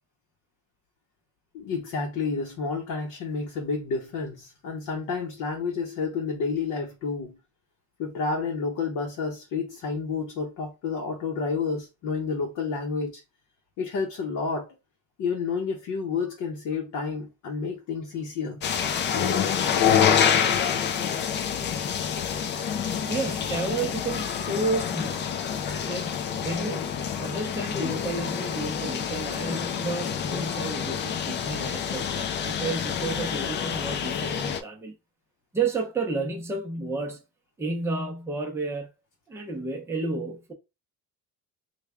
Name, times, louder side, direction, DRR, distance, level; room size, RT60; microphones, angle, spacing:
voice 1, 1.5-7.4 8.0-13.2 13.8-14.7 15.2-18.6, left 4 dB, 60° left, 0.8 m, -30 dB
sound 1, 18.6-34.6, left 8 dB, 35° left, 0.4 m, -27 dB
voice 2, 23.1-25.4 25.8-34.9 35.5-37.2 37.6-38.9 39.3-40.5, right 3 dB, 10° right, 0.6 m, -31 dB
3.2 x 2.3 x 3.5 m
cardioid pair, 155°, 34 cm